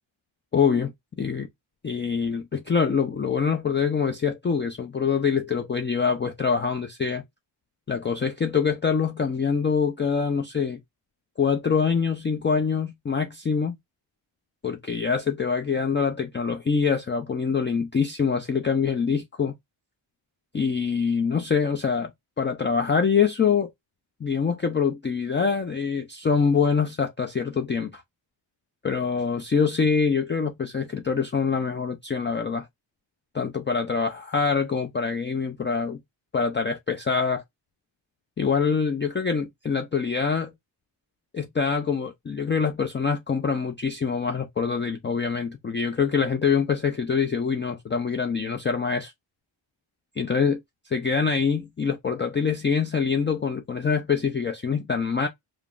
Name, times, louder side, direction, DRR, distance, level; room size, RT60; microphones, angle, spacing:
voice 1, 0.5-0.9 1.2-1.5 1.8-7.2 7.9-10.8 11.4-13.7 14.6-19.5 20.5-22.1 22.4-23.7 24.2-28.0 28.8-32.7 33.3-36.0 36.3-37.4 38.4-40.5 41.3-49.1 50.2-50.6 50.9-55.3, left 6 dB, 25° left, 0.4 m, -25 dB
3.2 x 2.0 x 2.4 m
cardioid pair, 65°, 48 cm